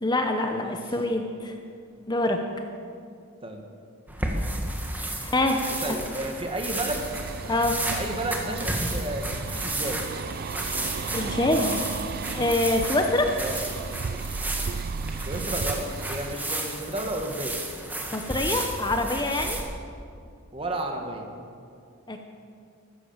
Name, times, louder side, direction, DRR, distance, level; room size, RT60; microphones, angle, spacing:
voice 1, 0.0-1.5 2.1-2.4 5.0-5.6 7.5-7.8 11.1-11.9 12.3-13.3 18.1-19.6 22.1-22.2, left 2 dB, 20° left, 4 dB, 0.9 m, -25 dB
sound 1, 4.1-19.6, right 1 dB, 10° right, 1.6 m, -33 dB
voice 2, 5.8-7.0 7.9-10.0 13.2-13.5 15.2-17.5 20.5-21.3, right 1 dB, 25° right, 3 dB, 1.7 m, -32 dB
sound 2, 6.9-16.3, right 5 dB, 45° right, 0.3 m, -34 dB
14.5 x 14.0 x 7.3 m, 2.4 s
head